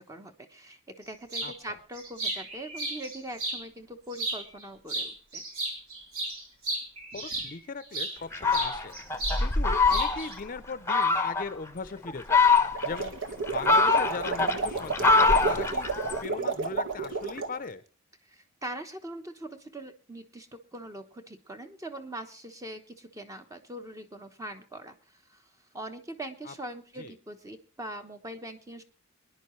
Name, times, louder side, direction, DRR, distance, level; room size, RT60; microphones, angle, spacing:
voice 1, 0.0-5.4 18.2-25.5 25.7-28.8, right 1 dB, 15° right, 6 dB, 1.1 m, -42 dB
sound 1, 1.3-1.5 2.0-3.6 4.1-4.6 4.9-8.2 8.5-9.4 9.7-10.3, right 2 dB, 85° right, 4.2 m, -34 dB
voice 2, 1.4-1.8 7.1-8.9 9.4-12.4 12.8-13.1 13.5-17.8 26.5-26.6 27.0-27.1, left 4 dB, 40° left, 13 dB, 0.7 m, -39 dB
Fowl, 8.3-10.4 10.9-11.5 12.1-13.0 13.4-16.2, left 4 dB, 15° left, 0.9 m, -24 dB
sound 2, 12.6-17.6, right 4 dB, 60° right, 1.5 m, -31 dB
24.5 x 10.5 x 3.2 m, 0.37 s
head